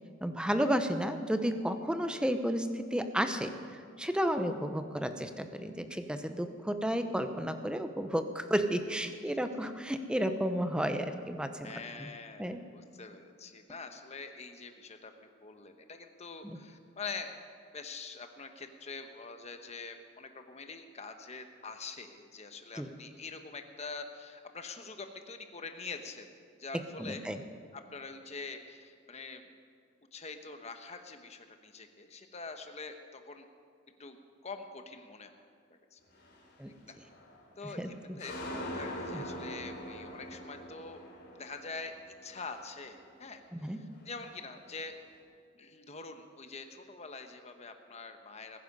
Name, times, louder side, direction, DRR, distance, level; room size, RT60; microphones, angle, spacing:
voice 1, 0.2-3.5 4.0-11.7 12.0-12.1 12.4-12.6 16.4-16.6 22.8-22.9 27.0-27.4 36.6-36.7 37.8-37.9 39.1-39.2 43.5-43.8, equal, 5° right, 8 dB, 0.7 m, -32 dB
voice 2, 11.6-15.1 15.4-17.3 17.7-26.3 26.6-27.2 27.7-29.4 30.1-33.4 34.0-34.2 34.4-35.3 35.9-36.0 36.9-37.0 37.6-38.4 38.7-41.0 41.3-41.9 42.2-45.0 45.5-48.6, left 4 dB, 35° left, 6 dB, 1.1 m, -45 dB
sound 1, 36.1-36.5 37.0-37.6 37.9-43.3 43.6-44.8, equal, 55° left, 2.9 m, -44 dB
20.5 x 10.0 x 5.4 m, 2.2 s
head